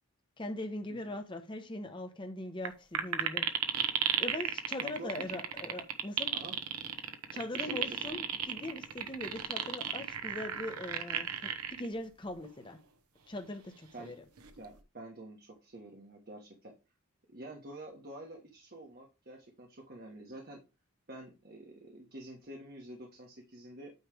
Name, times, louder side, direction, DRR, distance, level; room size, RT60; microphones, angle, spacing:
voice 1, 0.4-3.5 4.2-6.3 7.3-11.5 11.8-12.8 13.3-14.2, left 1 dB, 20° left, 0.8 m, -41 dB
sound 1, 2.6-2.7 2.9-11.9 12.4-12.5 14.4-14.8, right 9 dB, 90° right, 1.0 m, -33 dB
voice 2, 4.8-5.4 6.3-6.6 7.3-8.0 13.9-14.1 14.5-16.7 17.3-20.6 21.1-23.9, right 1 dB, 45° right, 1.2 m, -48 dB
9.2 x 3.2 x 4.8 m
head